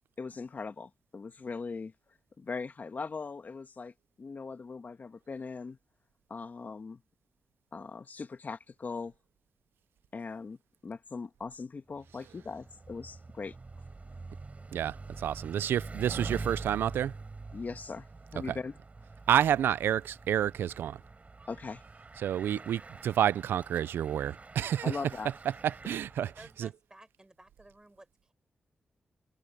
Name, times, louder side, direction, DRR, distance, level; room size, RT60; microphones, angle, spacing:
voice 1, 0.2-1.9 2.4-5.8 6.3-7.0 7.7-9.1 10.1-13.6 17.5-18.1 18.3-18.7 21.5-21.8 24.8-25.3, left 4 dB, 50° left, 1.8 m, -40 dB
Bicycle, 12.0-26.6, right 3 dB, 40° right, 4.9 m, -45 dB
voice 2, 14.7-17.1 18.5-18.6 19.3-21.0 22.2-25.0 25.6-26.3 26.6-26.7, right 10 dB, 90° right, 0.4 m, -29 dB
voice 3, 26.2-28.3, right 1 dB, 20° right, 7.6 m, -55 dB
cardioid pair, 55°, 4 cm